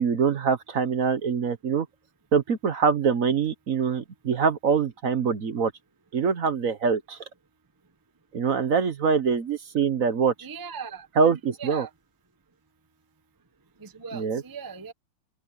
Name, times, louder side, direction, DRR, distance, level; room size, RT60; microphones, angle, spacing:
voice 1, 0.0-1.9 2.3-5.7 6.1-7.2 8.3-10.3 11.2-11.9 14.1-14.4, right 6 dB, 50° right, 1.3 m, -24 dB
voice 2, 10.4-11.9 13.8-14.9, right 6 dB, 20° right, 0.6 m, -39 dB
open air
omnidirectional pair, 2.1 m